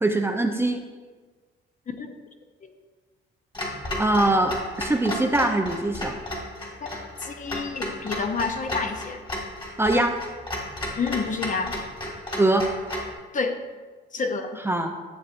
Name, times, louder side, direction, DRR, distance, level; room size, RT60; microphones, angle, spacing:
voice 1, 0.0-0.8 4.0-6.2 9.8-10.2 12.4-12.7 14.6-14.9, right 2 dB, 10° right, 4 dB, 0.6 m, -22 dB
Clock, 3.5-13.1, left 1 dB, 25° left, 1.8 m, -33 dB
voice 2, 6.8-9.2 11.0-11.7 13.3-13.5 14.1-14.6, left 4 dB, 40° left, 6 dB, 0.8 m, -29 dB
11.0 x 7.1 x 2.6 m, 1.4 s
cardioid pair, 90°, 20 cm